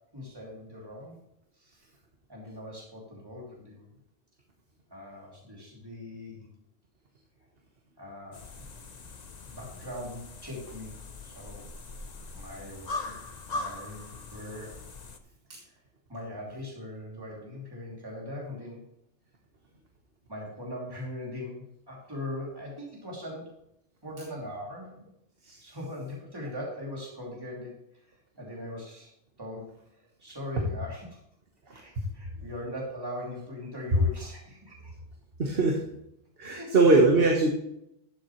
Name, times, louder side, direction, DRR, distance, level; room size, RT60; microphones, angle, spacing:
voice 1, 0.1-1.1 1.6-1.9 2.3-3.9 4.9-6.5 8.0-8.7 9.4-11.0 11.2-11.6 12.3-13.2 13.5-14.8 15.7-15.8 16.1-18.8 20.3-23.5 24.0-24.9 25.6-27.8 28.1-29.1 29.4-29.7 30.0-31.2 31.7-34.9 36.5-36.9, left 1 dB, 20° right, -3 dB, 2.9 m, -40 dB
sound 1, 8.3-15.2, left 3 dB, 40° left, 0.8 m, -41 dB
voice 2, 35.4-35.8 36.4-37.5, right 3 dB, 50° right, 1 dB, 1.5 m, -21 dB
12.5 x 7.3 x 3.1 m, 0.79 s
omnidirectional pair, 1.3 m